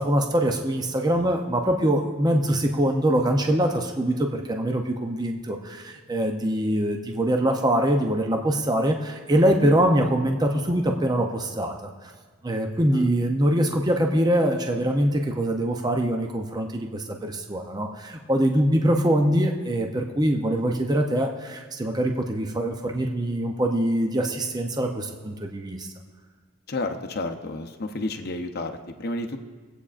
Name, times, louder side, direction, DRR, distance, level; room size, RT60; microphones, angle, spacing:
voice 1, 0.0-12.1 12.4-25.9, right 1 dB, 20° right, 3 dB, 0.6 m, -23 dB
voice 2, 26.7-29.4, left 2 dB, 45° left, 5 dB, 0.7 m, -31 dB
21.5 x 8.4 x 2.5 m, 1.5 s
head